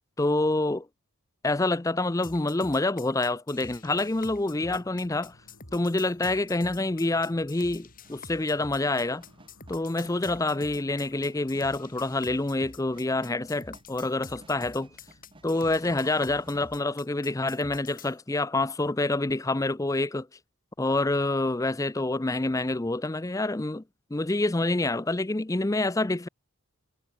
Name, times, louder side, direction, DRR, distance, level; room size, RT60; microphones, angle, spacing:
voice 1, 0.2-0.9 1.4-5.3 5.7-9.2 9.7-14.9 15.4-20.3 20.8-23.8 24.1-26.3, left 2 dB, 15° left, 0.5 m, -27 dB
sound 1, 2.2-18.1, left 4 dB, 40° left, 6.0 m, -47 dB
sound 2, 3.8-16.7, left 1 dB, 65° left, 5.5 m, -59 dB
sound 3, 8.0-16.9, right 1 dB, 25° right, 2.5 m, -56 dB
head